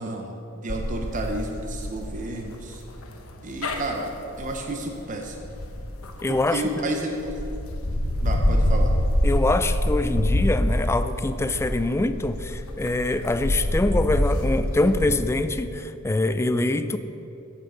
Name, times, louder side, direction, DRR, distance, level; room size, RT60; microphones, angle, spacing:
voice 1, 0.0-2.8 3.4-4.1 4.4-5.4 6.3-7.6 8.2-8.9, right 2 dB, 40° right, 2 dB, 0.7 m, -31 dB
sound 1, 0.7-6.7 7.2-15.1, left 1 dB, 90° left, 1.1 m, -26 dB
voice 2, 6.2-6.6 9.2-17.0, left 2 dB, 10° left, 11 dB, 0.3 m, -24 dB
9.5 x 5.9 x 7.2 m, 3.0 s
head